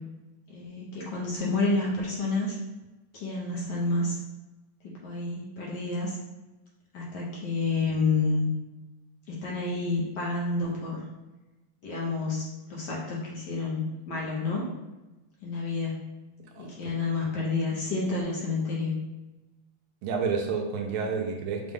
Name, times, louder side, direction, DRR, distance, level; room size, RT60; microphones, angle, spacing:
voice 1, 0.5-2.6 3.1-4.2 4.8-6.2 6.9-8.5 9.3-11.0 11.8-14.7 15.4-16.1 16.6-18.9, left 3 dB, 60° left, -5 dB, 1.3 m, -29 dB
voice 2, 16.6-16.9 20.0-21.7, right 5 dB, 80° right, 2 dB, 1.4 m, -30 dB
5.1 x 2.2 x 3.5 m, 1.1 s
omnidirectional pair, 2.4 m